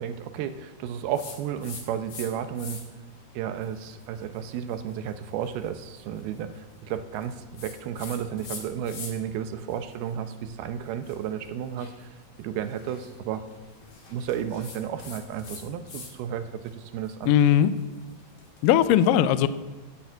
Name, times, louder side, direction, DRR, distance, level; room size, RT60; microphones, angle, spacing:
voice 1, 0.0-2.8 3.3-13.4 14.1-17.3, right 9 dB, 75° right, 9 dB, 2.7 m, -33 dB
sound 1, 1.1-2.3 2.5-3.1 3.6-9.4 9.7-16.1 16.4-18.6, left 4 dB, 45° left, 2.6 m, -45 dB
voice 2, 17.3-17.7 18.6-19.5, left 10 dB, 80° left, 13 dB, 2.0 m, -19 dB
12.0 x 10.0 x 8.2 m, 1.2 s
omnidirectional pair, 4.6 m